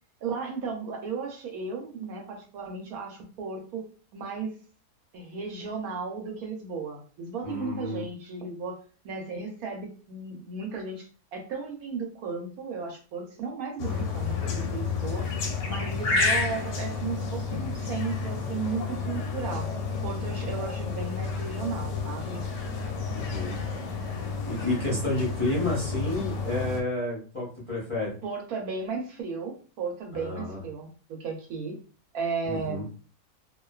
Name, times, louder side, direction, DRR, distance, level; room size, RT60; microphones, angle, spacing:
voice 1, 0.2-3.9 4.1-4.5 5.1-8.8 9.0-15.4 15.7-19.7 20.0-22.4 28.2-31.7 32.1-32.8, right 4 dB, 80° right, 2 dB, 1.1 m, -35 dB
voice 2, 7.4-8.0 23.1-23.6 24.5-28.1 30.1-30.6 32.5-32.8, left 2 dB, 30° left, -7 dB, 0.5 m, -30 dB
sound 1, 13.8-26.8, left 4 dB, 65° left, 0.8 m, -30 dB
2.5 x 2.3 x 2.3 m, 0.38 s
omnidirectional pair, 1.6 m